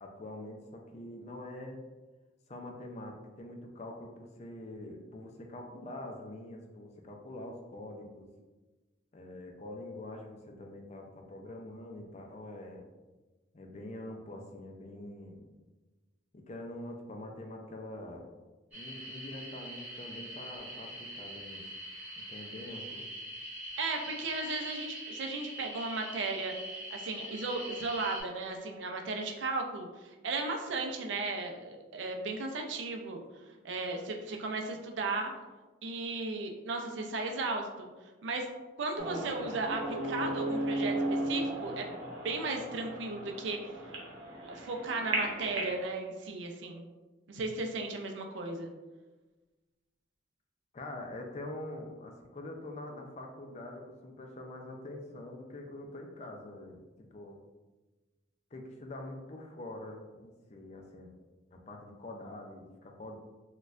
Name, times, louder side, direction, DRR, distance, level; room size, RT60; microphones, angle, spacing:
voice 1, 0.0-1.8 2.5-8.3 9.1-12.9 13.5-15.5 16.3-18.2 18.7-21.6 22.3-23.1 50.7-56.8 57.1-57.4 58.5-61.1 61.5-63.2, left 1 dB, 35° left, 2 dB, 0.4 m, -45 dB
sound 1, 18.7-28.2, equal, 10° right, 1.3 m, -43 dB
voice 2, 23.8-26.5 26.9-33.2 33.6-35.3 35.8-37.9 38.2-38.5 38.8-42.0 42.2-43.8 44.5-46.9 47.3-48.7, right 3 dB, 75° right, 3 dB, 0.4 m, -35 dB
sound 2, 39.0-45.8, right 1 dB, 90° right, 0.8 m, -35 dB
4.2 x 2.3 x 2.4 m, 1.2 s
head